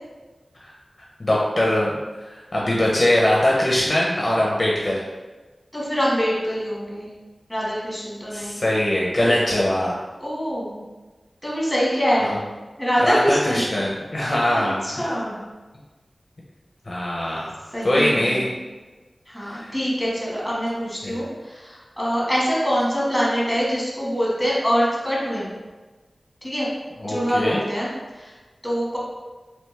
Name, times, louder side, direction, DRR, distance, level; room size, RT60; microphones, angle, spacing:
voice 1, 1.2-5.0 8.3-9.9 12.2-12.4 13.0-15.2 16.9-17.6 17.8-18.5 19.5-19.7 21.0-21.1 27.0-27.6, left 1 dB, 40° left, -4 dB, 0.6 m, -22 dB
voice 2, 5.7-7.1 7.5-8.6 10.2-10.8 11.4-12.4 12.8-13.7 14.8-15.4 17.7-18.5 19.3-25.6 26.4-26.7 27.1-27.9 28.1-28.3 28.6-29.0, equal, 5° left, -6 dB, 1.3 m, -24 dB
3.3 x 2.9 x 3.2 m, 1.3 s
wide cardioid pair, 80°, 0 cm